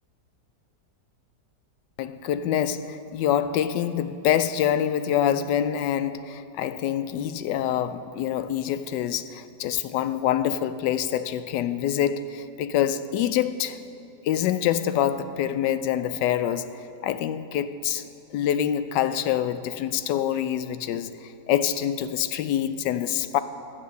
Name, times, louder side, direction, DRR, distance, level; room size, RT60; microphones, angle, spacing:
voice 1, 2.0-13.8 14.2-16.7 17.0-18.1 18.3-21.1 21.5-23.4, left 10 dB, 90° left, 1.2 m, -26 dB
11.5 x 8.8 x 6.9 m
omnidirectional pair, 1.8 m